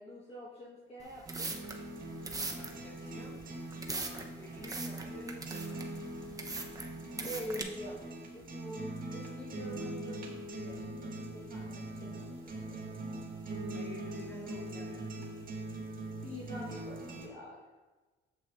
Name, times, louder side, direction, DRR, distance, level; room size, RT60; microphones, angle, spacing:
voice 1, 0.0-1.5 7.2-12.8 16.2-17.6, equal, 30° left, -6 dB, 1.3 m, -45 dB
sound 1, 1.0-7.6, right 3 dB, 20° right, 0.8 m, -41 dB
sound 2, 1.3-17.3, right 2 dB, 45° right, 1.7 m, -42 dB
voice 2, 2.4-3.5 4.0-6.0 13.7-15.1, left 1 dB, 10° left, -3 dB, 2.0 m, -51 dB
7.9 x 7.4 x 2.5 m, 1.3 s
cardioid pair, 90°, 20 cm